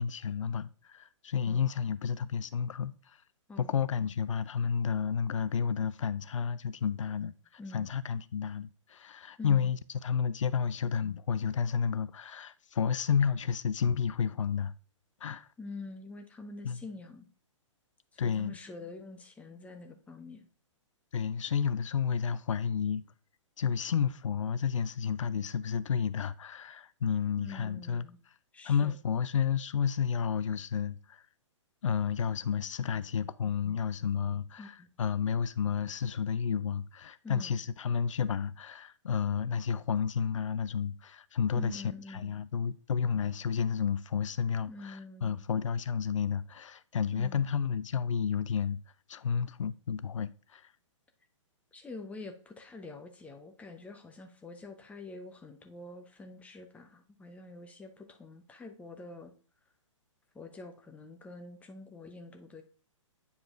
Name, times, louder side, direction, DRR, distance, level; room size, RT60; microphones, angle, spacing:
voice 1, 0.0-3.2 3.6-7.3 7.7-14.7 15.2-15.5 16.6-16.8 18.2-18.6 21.1-23.0 23.6-28.1 28.6-31.2 31.8-41.8 42.1-48.8 49.1-50.7, left 7 dB, 75° left, 0.4 m, -31 dB
voice 2, 3.5-3.9 7.6-7.9 9.4-9.7 15.6-17.3 18.1-20.5 27.4-28.2 28.5-29.0 34.6-34.9 37.2-37.6 41.5-42.3 44.7-45.4 47.1-47.5 51.7-59.3 60.3-62.6, left 3 dB, 10° left, 0.7 m, -46 dB
9.4 x 4.7 x 2.5 m
figure-of-eight pair, 120°, 16 cm